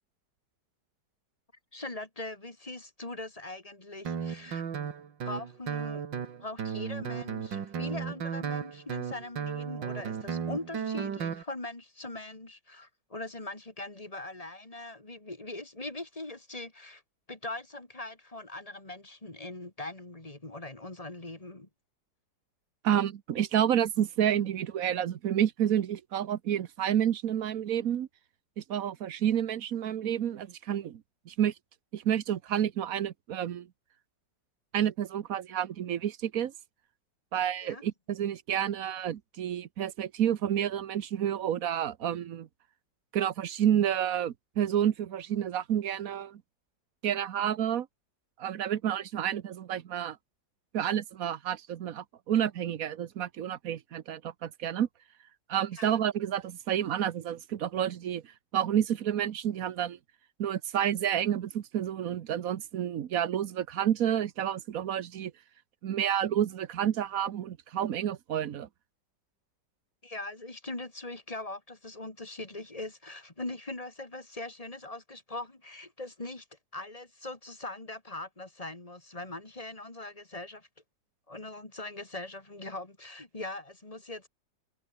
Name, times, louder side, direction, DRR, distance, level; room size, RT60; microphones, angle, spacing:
voice 1, 1.7-4.6 5.2-6.0 6.4-17.0 17.3-21.7 37.6-37.8 55.8-56.0 70.0-80.7 81.3-84.3, left 2 dB, 20° left, 3.0 m, -41 dB
Guitar, 4.1-11.4, right 7 dB, 80° right, 2.5 m, -35 dB
voice 2, 22.8-28.1 28.6-31.5 31.9-33.7 34.7-36.5 37.3-42.5 43.1-46.4 47.0-47.9 48.4-50.2 50.7-54.9 55.5-60.0 60.4-65.3 65.8-68.7, right 10 dB, 55° right, 1.2 m, -29 dB
omnidirectional pair, 2.0 m